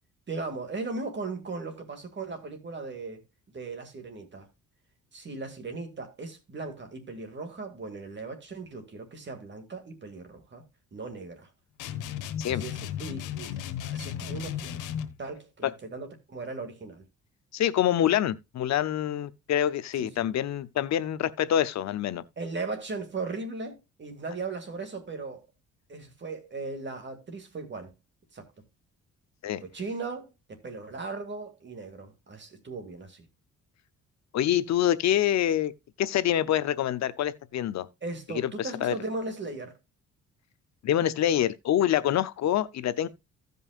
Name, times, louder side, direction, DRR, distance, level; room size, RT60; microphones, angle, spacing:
voice 1, 0.3-3.2 3.5-4.5 5.1-10.6 10.9-11.5 12.5-14.8 15.2-17.0 19.9-20.3 22.4-25.4 25.9-27.9 28.3-28.5 29.6-33.3 38.0-39.7, right 3 dB, 40° right, 2.3 m, -37 dB
sound 1, 11.8-15.2, left 10 dB, 85° left, 1.0 m, -35 dB
voice 2, 17.5-22.2 29.4-29.6 34.3-35.7 36.0-37.9 38.4-38.9 40.8-43.1, left 11 dB, 65° left, 0.7 m, -26 dB
15.5 x 5.4 x 2.4 m
cardioid pair, 90°, 30 cm